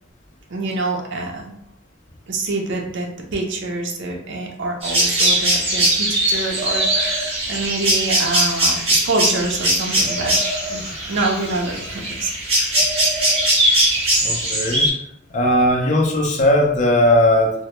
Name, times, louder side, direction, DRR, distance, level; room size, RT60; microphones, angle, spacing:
voice 1, 0.5-1.5 2.3-10.4 10.7-10.8 11.1-12.3 13.7-14.0 14.4-14.5, right 2 dB, 65° right, 0 dB, 0.5 m, -26 dB
sound 1, 4.8-14.9, right 1 dB, 30° right, 0.7 m, -20 dB
voice 2, 14.2-14.9 15.3-17.5, left 1 dB, 40° left, -1 dB, 0.5 m, -17 dB
2.1 x 2.1 x 2.9 m, 0.73 s
head